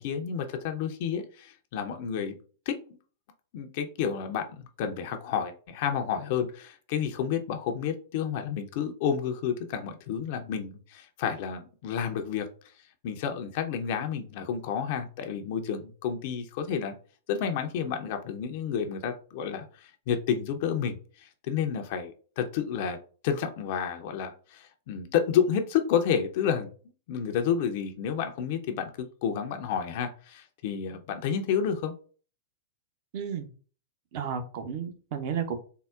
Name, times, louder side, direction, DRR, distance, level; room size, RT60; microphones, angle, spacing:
voice 1, 0.0-2.4 2.7-2.8 3.5-12.5 13.0-17.0 17.3-23.0 23.2-26.7 27.1-32.0, left 7 dB, 50° left, 6 dB, 0.4 m, -30 dB
voice 2, 33.1-33.5 34.1-35.6, right 7 dB, 50° right, 7 dB, 0.6 m, -32 dB
3.6 x 2.0 x 2.3 m, 0.39 s
figure-of-eight pair, 100°, 0 cm